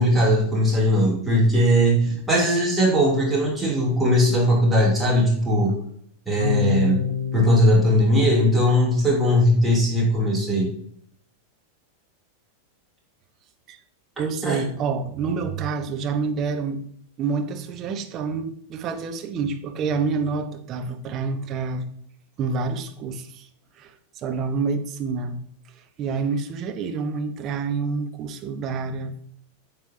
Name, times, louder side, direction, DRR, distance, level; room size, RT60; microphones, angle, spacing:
voice 1, 0.0-5.7 6.3-7.0 7.3-10.7 14.4-14.6, equal, 10° right, -3 dB, 3.1 m, -19 dB
sound 1, 6.4-9.0, left 7 dB, 90° right, 0.8 m, -28 dB
voice 2, 14.2-16.8 17.2-21.8 22.4-23.5 23.8-25.4 26.0-29.3, right 5 dB, 35° right, 7 dB, 1.0 m, -28 dB
9.2 x 7.4 x 2.8 m, 0.64 s
figure-of-eight pair, 90°, 0 cm